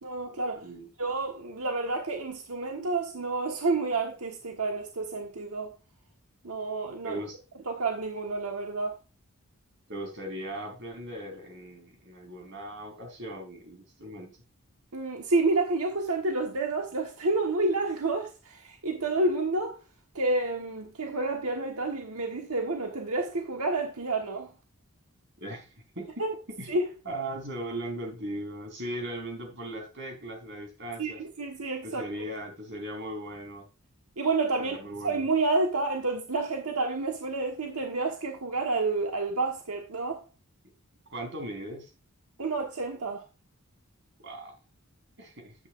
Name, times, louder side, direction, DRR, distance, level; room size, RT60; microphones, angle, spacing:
voice 1, 0.0-0.6 1.0-5.7 6.4-7.2 7.7-9.0 14.9-19.8 20.1-24.5 26.2-26.3 26.7-26.9 31.0-32.1 34.2-34.8 35.0-40.2 42.4-43.2, right 3 dB, 90° right, 1.3 m, -29 dB
voice 2, 7.0-7.4 9.9-14.3 25.4-25.7 26.0-26.1 26.5-26.7 27.0-31.2 31.8-33.7 34.6-35.2 41.1-41.9 44.2-44.5 45.2-45.5, right 1 dB, 55° right, 3.8 m, -38 dB
11.0 x 8.2 x 2.5 m
head